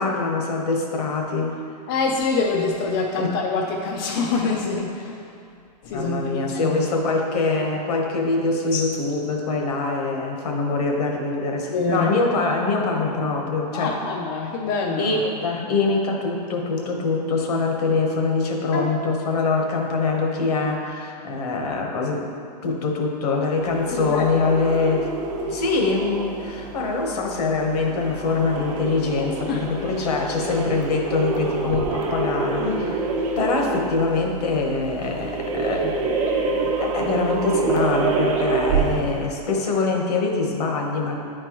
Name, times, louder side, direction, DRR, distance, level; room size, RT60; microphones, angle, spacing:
voice 1, 0.0-1.5 3.2-3.3 5.9-13.9 15.0-22.2 22.6-25.1 25.5-33.0 33.4-35.9 36.6-41.2, left 3 dB, 70° left, 1 dB, 1.1 m, -24 dB
voice 2, 1.9-5.2 5.8-6.8 8.7-8.8 11.7-12.1 13.7-15.2 18.7-18.9 23.9-24.4 29.5-29.7 32.6-33.0, left 4 dB, 35° left, -1 dB, 0.5 m, -25 dB
sound 1, 23.6-39.3, right 3 dB, 50° right, 0.9 m, -27 dB
9.2 x 4.5 x 3.0 m, 2.4 s
supercardioid pair, 160°, 21 cm